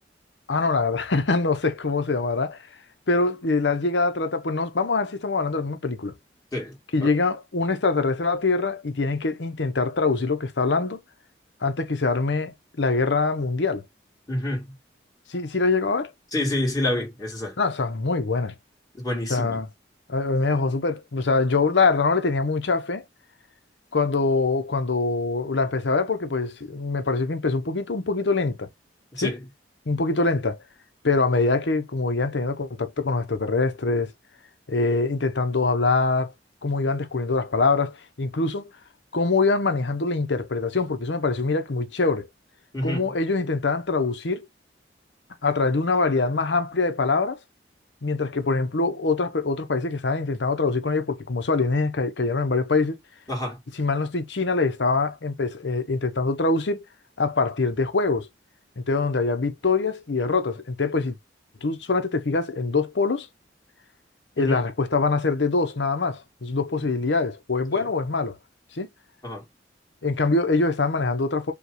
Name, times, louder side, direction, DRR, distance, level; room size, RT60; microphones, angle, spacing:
voice 1, 0.5-2.7 3.1-6.1 6.9-11.0 11.6-13.8 15.3-16.1 17.6-18.5 19.3-19.7 20.1-23.0 23.9-28.7 29.2-29.3 29.9-30.6 31.0-34.1 34.7-36.3 36.6-38.7 39.1-42.3 42.8-44.4 45.4-47.4 48.0-53.0 53.8-56.8 57.2-58.3 58.8-61.2 61.6-63.3 64.4-68.4 68.7-68.9 70.0-71.5, left 3 dB, 75° left, 0.8 m, -24 dB
voice 2, 6.5-7.1 14.3-14.8 16.3-17.6 19.0-19.6 29.1-29.5 42.7-43.1 53.3-53.6 64.4-64.6 67.7-67.9 69.2-69.4, left 1 dB, 20° left, 2.0 m, -28 dB
5.1 x 2.4 x 3.1 m
head